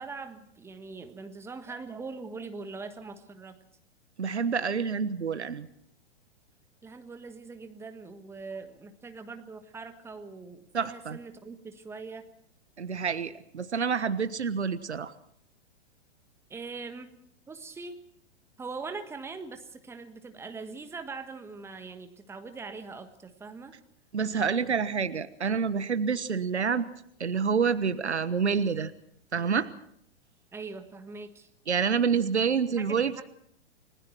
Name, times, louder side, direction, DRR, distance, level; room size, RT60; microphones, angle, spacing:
voice 1, 0.0-3.6 6.8-12.3 16.5-17.1 17.5-18.0 18.6-23.8 30.5-31.5 32.8-33.2, right 4 dB, 5° right, 8 dB, 1.5 m, -42 dB
voice 2, 4.2-5.7 10.7-11.2 12.8-15.1 24.1-26.9 27.2-28.9 29.3-29.7 31.7-33.2, right 6 dB, 70° right, 14 dB, 1.3 m, -28 dB
29.5 x 20.5 x 4.5 m, 0.71 s
figure-of-eight pair, 110°, 34 cm